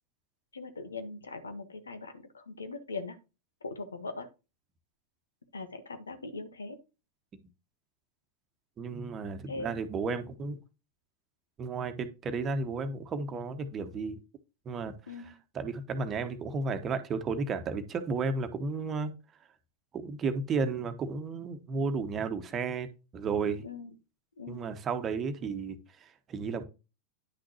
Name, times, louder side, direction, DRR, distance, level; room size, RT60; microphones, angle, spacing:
voice 1, 0.5-3.1 3.6-4.3 5.5-6.8 9.5-9.7 15.1-15.3 23.6-23.9 24.4-24.7, left 3 dB, 75° left, 1.3 m, -40 dB
voice 2, 8.8-10.6 11.6-14.2 14.6-19.1 19.9-23.6 24.5-26.6, right 4 dB, 25° right, 1.3 m, -33 dB
10.0 x 6.3 x 2.9 m
figure-of-eight pair, 90°, 0 cm